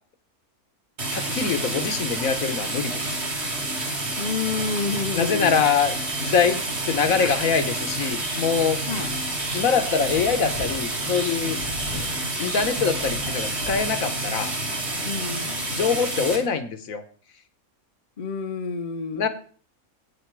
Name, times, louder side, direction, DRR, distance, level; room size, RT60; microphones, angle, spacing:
sound 1, 1.0-16.4, right 2 dB, 45° right, 2.6 m, -29 dB
voice 1, 1.1-3.1 5.1-8.8 9.5-11.6 12.4-14.5 15.7-17.0 19.1-19.3, left 6 dB, 70° left, 10 dB, 1.5 m, -24 dB
voice 2, 4.2-5.6 8.9-9.1 15.0-15.7 18.2-19.3, left 5 dB, 40° left, 9 dB, 0.6 m, -29 dB
sound 2, 5.6-14.1, equal, 80° right, 3.0 m, -39 dB
9.9 x 8.6 x 4.6 m, 0.43 s
omnidirectional pair, 1.5 m